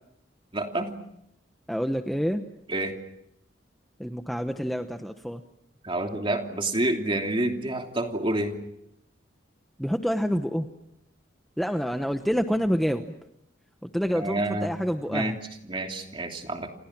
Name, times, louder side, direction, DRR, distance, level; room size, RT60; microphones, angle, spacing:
voice 1, 0.5-0.9 2.7-3.0 5.8-8.6 14.1-14.7 15.1-16.7, right 1 dB, 30° right, 3 dB, 3.0 m, -28 dB
voice 2, 1.7-2.4 4.0-5.4 9.8-10.7 11.6-13.0 13.8-15.3, equal, ahead, 6 dB, 0.9 m, -27 dB
29.5 x 27.5 x 6.0 m, 0.78 s
head